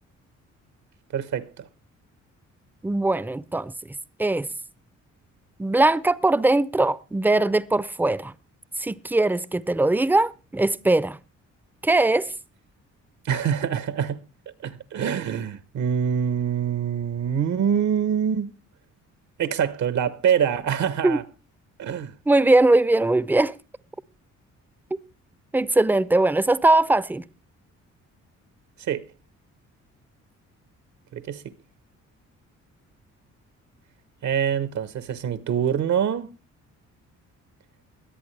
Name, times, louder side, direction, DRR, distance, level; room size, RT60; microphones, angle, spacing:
voice 1, 1.1-1.7 13.2-14.2 14.6-18.5 19.4-21.2 21.8-22.1 28.9-29.0 31.1-31.4 34.2-36.3, right 8 dB, 70° right, 1.2 m, -25 dB
voice 2, 2.8-4.5 5.6-8.3 8.8-11.2 11.8-12.3 21.0-21.2 22.3-23.5 25.5-27.2, right 2 dB, 5° right, 0.6 m, -21 dB
21.5 x 8.3 x 3.3 m
cardioid pair, 90°, 30 cm